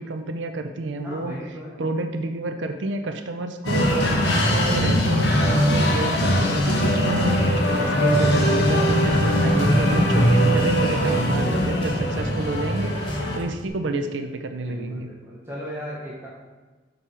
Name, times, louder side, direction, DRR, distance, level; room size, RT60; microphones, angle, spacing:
voice 1, 0.0-1.3 1.8-15.1, right 2 dB, 85° right, 7 dB, 0.5 m, -30 dB
voice 2, 1.0-1.8 3.9-4.1 5.4-5.6 8.7-9.1 11.7-11.9 13.8-14.0 14.6-16.3, equal, 15° right, -7 dB, 1.1 m, -37 dB
sound 1, 3.6-13.4, equal, 65° left, 1.1 m, -20 dB
sound 2, 4.0-5.3 5.6-7.8 8.1-10.3 10.6-12.8 13.1-13.7, left 1 dB, 30° left, 1.0 m, -40 dB
6.1 x 5.2 x 4.3 m, 1.3 s
head